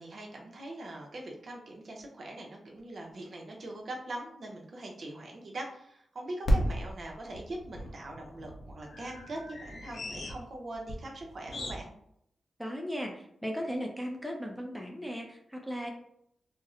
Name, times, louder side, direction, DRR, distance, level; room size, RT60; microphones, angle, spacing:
voice 1, 0.0-11.9, right 1 dB, 50° right, 0 dB, 0.7 m, -42 dB
sound 1, 2.0-2.1 2.8-2.9 3.1-3.2 6.4-11.8, equal, 60° left, 0.7 m, -34 dB
voice 2, 12.6-15.9, equal, ahead, 0 dB, 0.4 m, -37 dB
4.1 x 2.0 x 2.5 m, 0.73 s
wide cardioid pair, 125°, 0 cm